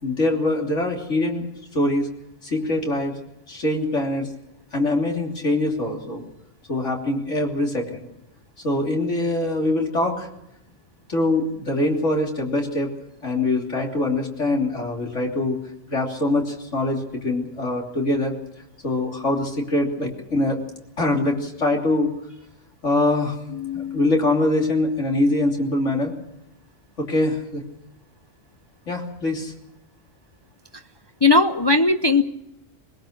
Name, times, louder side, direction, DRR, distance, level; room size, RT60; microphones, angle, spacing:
voice 1, 0.0-1.4 1.7-2.1 2.4-3.1 3.5-4.3 4.7-6.2 6.7-8.1 8.6-10.3 11.1-12.9 13.2-15.6 15.9-18.3 18.8-20.6 21.0-22.1 22.8-23.3 23.7-26.1 27.0-27.6 28.9-29.5, left 2 dB, 80° left, 1 dB, 3.5 m, -23 dB
voice 2, 23.5-24.0 31.2-32.2, left 3 dB, 25° left, 8 dB, 0.7 m, -19 dB
21.5 x 20.5 x 6.6 m, 0.84 s
omnidirectional pair, 1.2 m